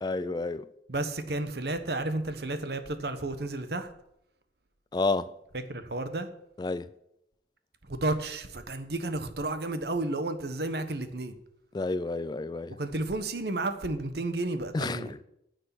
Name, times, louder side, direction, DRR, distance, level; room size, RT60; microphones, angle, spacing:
voice 1, 0.0-0.7 4.9-5.3 6.6-6.9 11.7-12.8 14.7-15.0, left 3 dB, 25° left, 0.3 m, -30 dB
voice 2, 0.9-3.9 5.5-6.3 7.8-11.3 12.8-15.2, right 2 dB, 70° right, 1.2 m, -32 dB
10.0 x 6.6 x 8.7 m
head